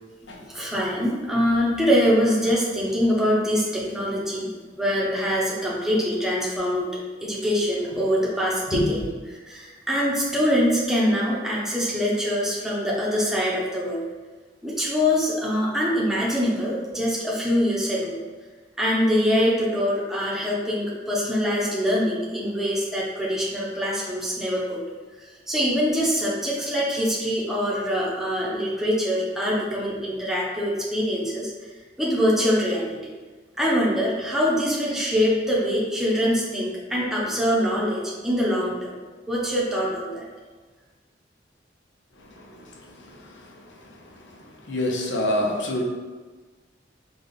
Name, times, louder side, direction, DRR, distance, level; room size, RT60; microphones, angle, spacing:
voice 1, 0.4-4.5 4.8-6.9 7.2-9.0 9.3-14.0 14.6-18.2 18.8-24.8 25.5-31.5 32.0-33.1 33.6-38.9 39.3-40.2, equal, ahead, -6 dB, 0.7 m, -24 dB
voice 2, 42.2-45.8, left 1 dB, 90° left, 0 dB, 0.7 m, -29 dB
4.0 x 2.4 x 3.4 m, 1.3 s
head